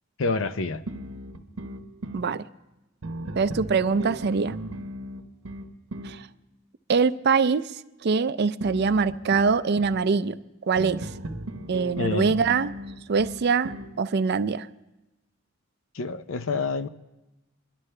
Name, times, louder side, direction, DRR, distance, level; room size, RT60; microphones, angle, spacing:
voice 1, 0.2-0.8 12.0-12.3 15.9-16.9, left 4 dB, 65° left, 11 dB, 0.6 m, -27 dB
sound 1, 0.9-2.3 3.0-6.2 8.6-10.0 10.8-13.9, right 1 dB, 80° right, 1.0 m, -36 dB
voice 2, 2.1-2.4 3.4-4.6 6.0-6.3 6.9-7.7 8.0-10.4 10.6-11.1 11.7-12.7 13.1-14.7, right 5 dB, 50° right, 13 dB, 0.4 m, -23 dB
28.0 x 11.5 x 3.3 m, 1.0 s
head